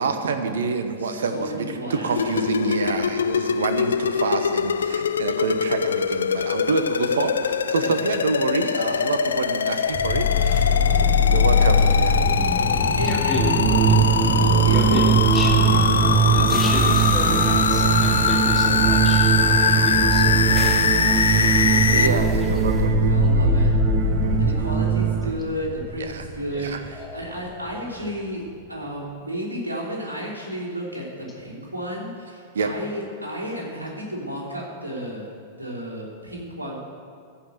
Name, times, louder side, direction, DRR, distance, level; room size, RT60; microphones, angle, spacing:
voice 1, 0.0-10.5 10.9-12.2 21.9-23.0 24.2-24.3 26.0-26.2 26.6-26.8 32.5-32.7, right 4 dB, 70° right, 8 dB, 1.1 m, -27 dB
voice 2, 1.0-3.1 7.8-7.9 12.6-13.4 14.4-15.0 21.7-22.4 23.0-23.7 24.4-28.4 28.7-35.3 35.6-36.8, equal, 85° right, -5 dB, 3.5 m, -32 dB
sound 1, 2.1-22.1, left 7 dB, 75° left, 0.4 m, -23 dB
sound 2, 9.9-28.0, left 4 dB, ahead, 2.1 m, -25 dB
voice 3, 13.0-13.5 13.8-14.0 14.7-15.6 16.3-20.6 22.4-22.7 23.3-23.4 26.5-27.2, left 3 dB, 15° left, -3 dB, 2.5 m, -32 dB
sound 3, 13.4-25.3, right 9 dB, 40° right, 1.0 m, -21 dB
14.5 x 5.8 x 7.8 m, 2.2 s
figure-of-eight pair, 100°, 0 cm